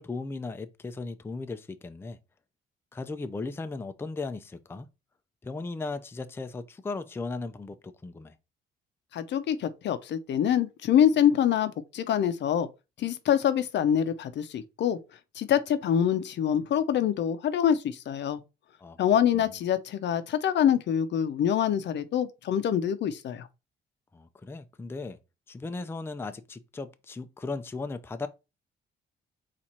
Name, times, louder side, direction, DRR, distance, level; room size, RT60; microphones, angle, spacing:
voice 1, 0.0-2.2 2.9-4.9 5.4-8.3 18.8-19.0 19.3-19.4 24.1-25.2 25.5-28.3, left 3 dB, 10° left, 0.4 m, -37 dB
voice 2, 9.1-12.7 13.0-15.0 15.4-18.4 19.0-23.5, left 9 dB, 65° left, 0.6 m, -25 dB
4.3 x 2.5 x 4.2 m
cardioid pair, 90°, 20 cm